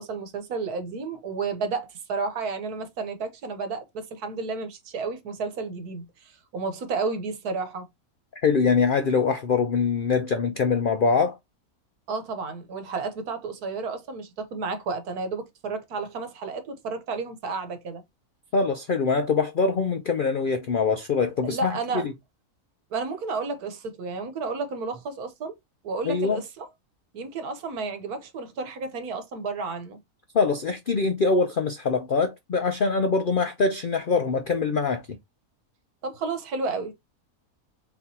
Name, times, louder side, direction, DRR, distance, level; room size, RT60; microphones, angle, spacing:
voice 1, 0.0-7.9 12.1-18.0 21.4-22.1 22.9-25.6 25.8-26.7 27.1-30.0 36.0-37.0, right 4 dB, 80° right, 1.5 m, -32 dB
voice 2, 8.4-11.4 18.5-22.1 26.0-26.4 30.3-35.0, left 4 dB, 70° left, 0.5 m, -23 dB
4.3 x 4.0 x 2.8 m
omnidirectional pair, 1.6 m